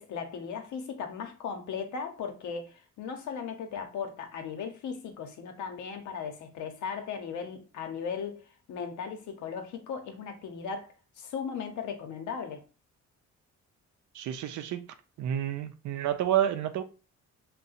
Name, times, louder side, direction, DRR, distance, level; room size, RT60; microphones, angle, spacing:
voice 1, 0.0-8.4 8.7-12.6, left 6 dB, 75° left, 0.8 m, -37 dB
voice 2, 14.2-14.8 15.2-16.8, right 11 dB, 75° right, 0.5 m, -29 dB
2.7 x 2.2 x 4.0 m
cardioid pair, 90°, 30 cm